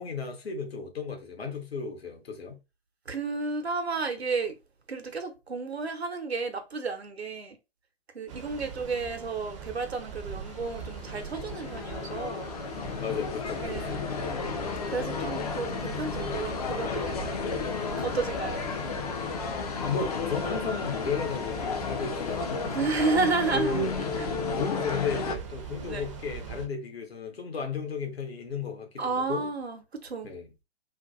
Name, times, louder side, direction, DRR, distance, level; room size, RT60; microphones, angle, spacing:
voice 1, 0.0-2.6 13.0-14.3 18.1-18.9 19.8-22.8 23.5-23.9 24.5-29.5 30.2-30.5, left 5 dB, 70° left, 0.9 m, -34 dB
voice 2, 3.1-4.6 4.9-7.6 8.1-12.5 13.6-14.1 14.9-17.5 18.0-18.8 22.7-23.9 24.2-24.3 25.8-26.1 29.0-30.3, right 4 dB, 80° right, 0.8 m, -32 dB
sound 1, 8.3-26.7, right 7 dB, 30° right, 0.5 m, -42 dB
sound 2, 10.2-25.4, left 5 dB, 40° left, 0.4 m, -33 dB
2.5 x 2.2 x 2.5 m
figure-of-eight pair, 120°, 32 cm